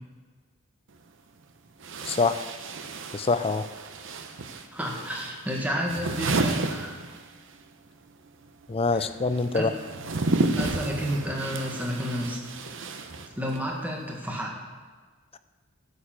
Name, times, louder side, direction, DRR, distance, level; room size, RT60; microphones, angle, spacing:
sound 1, 0.9-1.0 1.8-7.6 7.9-13.7, right 2 dB, 60° right, 0.8 m, -32 dB
voice 1, 2.0-2.5 3.1-3.7 8.7-9.7, left 4 dB, 25° left, 12 dB, 0.4 m, -25 dB
voice 2, 4.7-6.9 8.9-9.1 9.5-9.7 10.6-12.4 13.4-14.5, equal, 10° right, -1 dB, 1.6 m, -31 dB
11.0 x 6.7 x 7.5 m, 1.4 s
head